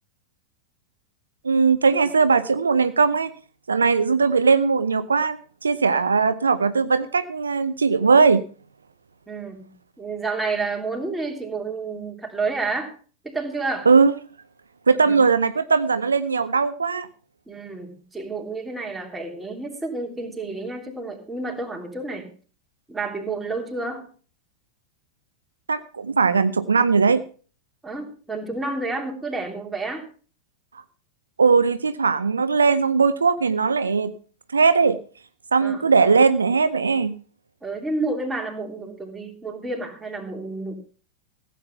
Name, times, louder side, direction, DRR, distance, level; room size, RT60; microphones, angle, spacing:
voice 1, 1.4-3.3 3.7-8.4 13.9-14.1 14.9-17.1 25.7-27.2 31.4-34.1 34.5-35.0 35.5-37.1, right 5 dB, 75° right, 13 dB, 0.6 m, -19 dB
voice 2, 9.3-9.7 10.0-12.9 13.2-13.9 15.0-15.2 17.5-22.3 22.9-24.0 27.8-30.1 35.6-36.1 37.6-40.7, right 3 dB, 10° right, 2 dB, 3.1 m, -30 dB
15.5 x 8.5 x 5.8 m, 0.41 s
figure-of-eight pair, 90°, 0 cm